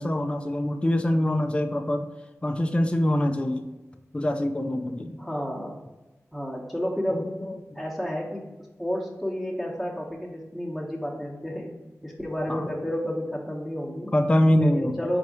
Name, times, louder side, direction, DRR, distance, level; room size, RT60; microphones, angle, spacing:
voice 1, 0.0-2.1 2.4-3.6 4.1-5.2 7.1-7.8 12.5-12.7 14.1-15.0, left 1 dB, 20° left, 6 dB, 0.3 m, -24 dB
voice 2, 5.2-5.8 6.3-7.3 7.7-8.5 8.8-11.8 12.0-14.1 14.5-15.2, equal, ahead, -3 dB, 0.9 m, -31 dB
4.1 x 2.6 x 4.8 m, 1.1 s
wide cardioid pair, 55°, 6 cm